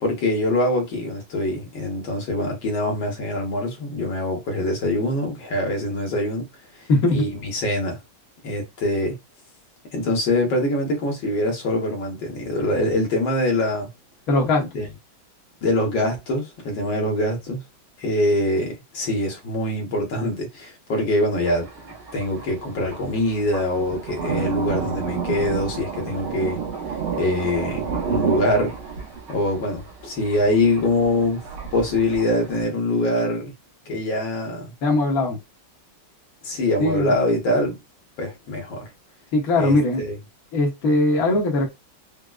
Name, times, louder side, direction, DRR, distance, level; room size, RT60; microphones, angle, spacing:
voice 1, 0.0-6.5 6.7-8.0 8.4-9.2 9.9-13.9 14.7-14.9 15.6-17.6 18.0-21.7 22.1-26.6 27.2-28.7 29.3-31.4 31.7-33.5 33.9-34.7 36.4-37.8 38.2-38.9 39.5-40.2, left 1 dB, 70° left, 1.8 m, -24 dB
voice 2, 6.9-7.2 14.3-14.7 34.8-35.4 36.8-37.1 39.3-40.0 40.5-41.7, left 2 dB, 55° left, 1.3 m, -20 dB
Thunder, 21.4-32.6, right 6 dB, 90° right, 1.8 m, -31 dB
4.8 x 2.0 x 2.3 m
omnidirectional pair, 2.2 m